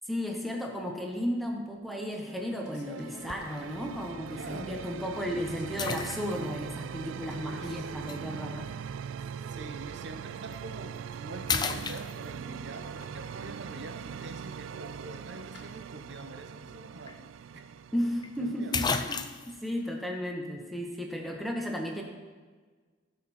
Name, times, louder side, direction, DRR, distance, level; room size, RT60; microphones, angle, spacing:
voice 1, 0.1-8.7 17.9-22.0, equal, ahead, 1 dB, 1.2 m, -34 dB
sound 1, 1.3-1.5 1.9-4.0 4.5-4.8 5.2-6.2 6.9-8.7 9.0-9.1 12.6-13.2 14.1-15.7, left 1 dB, 60° left, 1.9 m, -51 dB
sound 2, 2.2-20.0, right 7 dB, 85° right, 0.3 m, -42 dB
sound 3, 3.3-3.6 4.3-4.4 5.8-6.6 8.1-8.2 10.4-10.6 11.0-11.2 11.5-12.6 16.7-16.8 17.1-17.2 18.2-18.3 18.7-19.6, left 5 dB, 20° left, 0.4 m, -32 dB
voice 2, 4.3-5.4 7.4-7.9 9.5-17.6 18.4-18.9, right 2 dB, 65° right, 6 dB, 1.0 m, -45 dB
17.0 x 5.9 x 4.4 m, 1.4 s
head